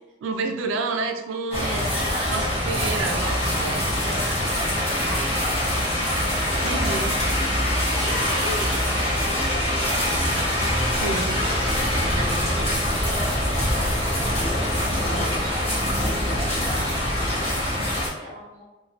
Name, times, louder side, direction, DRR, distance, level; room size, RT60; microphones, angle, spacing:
voice 1, 0.2-1.8 2.3-3.8 6.6-7.2 11.0-11.4, right 3 dB, 85° right, 6 dB, 0.3 m, -29 dB
sound 1, 1.5-18.1, left 1 dB, 30° left, 1.0 m, -24 dB
voice 2, 1.6-3.1 3.7-7.3 8.0-18.6, equal, 35° right, -3 dB, 0.6 m, -38 dB
3.0 x 2.1 x 2.7 m, 1.1 s
head